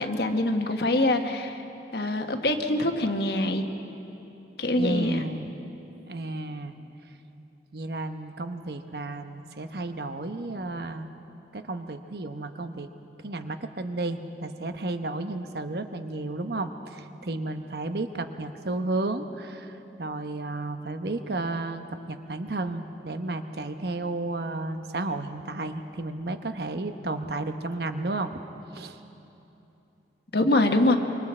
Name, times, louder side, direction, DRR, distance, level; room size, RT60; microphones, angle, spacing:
voice 1, 0.0-1.6 1.9-3.6 4.6-5.2 30.3-30.9, left 2 dB, 65° left, 5 dB, 1.2 m, -24 dB
voice 2, 4.8-5.5 6.1-6.8 7.7-11.1 11.5-12.9 13.2-28.4 28.7-29.0, right 2 dB, 65° right, 8 dB, 0.9 m, -32 dB
26.0 x 24.0 x 4.4 m, 3.0 s
head